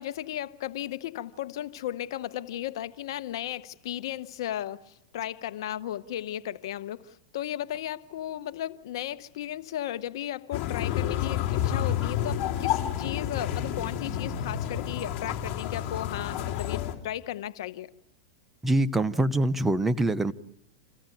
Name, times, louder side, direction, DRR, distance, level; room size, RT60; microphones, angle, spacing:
voice 1, 0.0-17.9, left 12 dB, 70° left, 1.0 m, -35 dB
sound 1, 10.5-16.9, left 10 dB, 40° left, 3.2 m, -30 dB
voice 2, 18.6-20.3, right 1 dB, 10° right, 0.8 m, -24 dB
28.0 x 15.5 x 9.1 m
hypercardioid pair, 125°, 3 cm